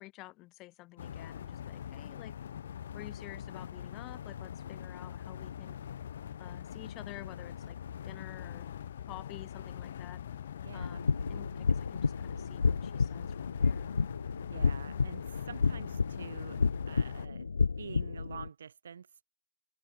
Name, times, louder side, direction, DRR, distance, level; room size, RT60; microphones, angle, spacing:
voice 1, 0.0-2.3 2.9-5.8 6.4-7.8 8.0-8.7 9.1-10.2 10.7-13.9, left 20 dB, 15° left, 2.8 m, -50 dB
sound 1, 1.0-17.3, left 9 dB, 40° left, 0.5 m, -43 dB
voice 2, 10.6-11.0 14.5-16.6 16.9-17.5 17.8-19.1, right 7 dB, 55° right, 3.3 m, -47 dB
sound 2, 10.8-18.5, left 4 dB, 85° left, 0.6 m, -31 dB
hypercardioid pair, 165°, 0 cm